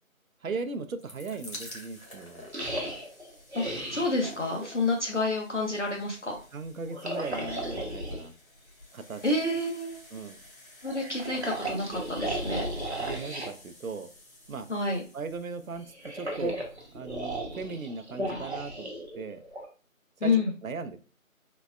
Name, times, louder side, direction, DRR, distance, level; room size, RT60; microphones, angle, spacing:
voice 1, 0.4-2.5 4.6-4.7 6.2-8.3 8.9-9.2 10.1-10.4 12.2-12.3 13.0-14.1 14.5-14.7 15.1-16.6 16.9-19.4 20.2-21.0, right 4 dB, 75° right, 10 dB, 0.5 m, -38 dB
sound 1, 0.7-17.8 18.5-18.6 18.8-18.9, left 1 dB, 80° left, 1.5 m, -51 dB
sound 2, 2.5-4.2 6.9-8.2 10.9-13.5 15.8-19.7, right 1 dB, 50° right, 0.8 m, -35 dB
voice 2, 3.9-6.4 9.2-10.0 10.8-12.7 14.7-15.0 20.2-20.5, left 2 dB, 60° left, 0 dB, 0.7 m, -28 dB
3.9 x 2.1 x 2.2 m, 0.36 s
figure-of-eight pair, 180°, 41 cm